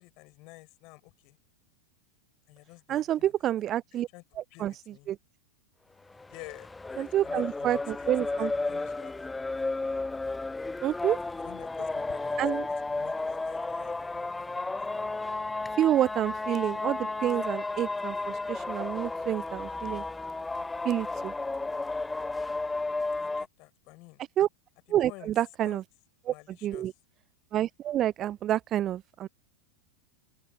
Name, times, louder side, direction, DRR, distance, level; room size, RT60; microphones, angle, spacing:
voice 1, 0.0-1.4 2.5-3.3 3.9-4.2 4.5-5.1 6.3-8.1 8.4-9.5 11.2-14.2 14.8-14.9 23.2-24.2 25.0-25.3 25.6-25.8 26.3-26.9, left 26 dB, 40° left, 7.2 m, -51 dB
voice 2, 2.9-4.1 4.4-4.7 5.1-5.2 7.0-8.5 10.8-11.2 12.4-12.7 15.8-20.0 20.8-21.3 24.4-24.5 24.9-25.8 26.3-26.4 26.6-26.9 27.5-29.3, right 12 dB, 30° right, 0.4 m, -28 dB
sound 1, 6.1-23.5, left 3 dB, 10° left, 0.7 m, -33 dB
open air
figure-of-eight pair, 90°, 0 cm